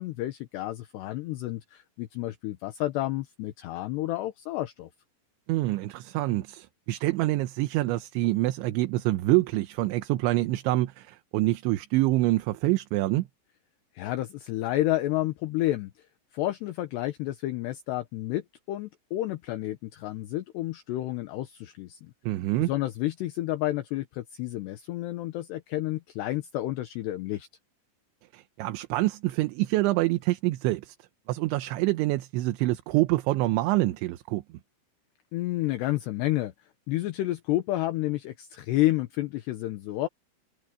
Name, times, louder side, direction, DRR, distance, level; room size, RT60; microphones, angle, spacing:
voice 1, 0.0-4.9 13.9-15.9 16.3-22.1 22.6-27.5 35.3-36.5 36.9-40.1, left 16 dB, 75° left, 2.8 m, -30 dB
voice 2, 5.5-13.3 22.3-22.7 28.3-31.0 31.3-34.4, right 18 dB, 80° right, 3.1 m, -26 dB
omnidirectional pair, 5.5 m